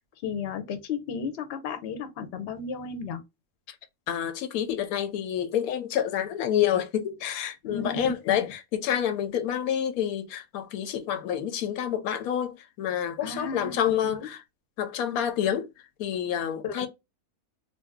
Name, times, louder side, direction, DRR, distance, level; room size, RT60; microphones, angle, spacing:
voice 1, 0.2-3.2 7.6-8.5 13.2-13.8 14.0-14.3 16.6-16.9, left 5 dB, 60° left, 0.7 m, -34 dB
voice 2, 4.1-8.5 8.7-14.4 14.8-15.7 16.0-16.9, left 9 dB, 90° left, 1.1 m, -28 dB
2.6 x 2.2 x 3.4 m
omnidirectional pair, 1.5 m